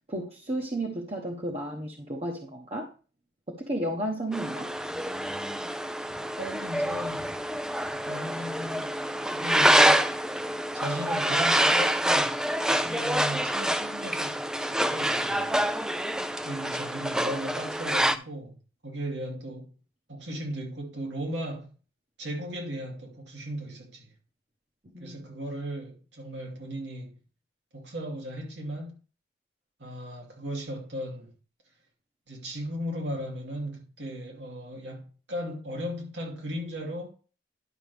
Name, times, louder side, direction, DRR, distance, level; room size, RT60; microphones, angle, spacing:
voice 1, 0.1-2.9 3.5-4.7 24.9-25.3, right 1 dB, 35° right, 1.0 m, -33 dB
sound 1, 4.3-18.2, right 1 dB, 5° right, 0.3 m, -26 dB
voice 2, 6.4-7.3 8.1-8.9 9.3-10.1 10.7-12.4 12.7-16.0 16.4-18.6 18.8-19.7 20.1-21.7 22.2-24.1 25.0-27.1 27.7-29.0 29.8-31.3 32.3-37.1, equal, 85° right, 2.7 m, -36 dB
11.0 x 6.2 x 3.4 m
head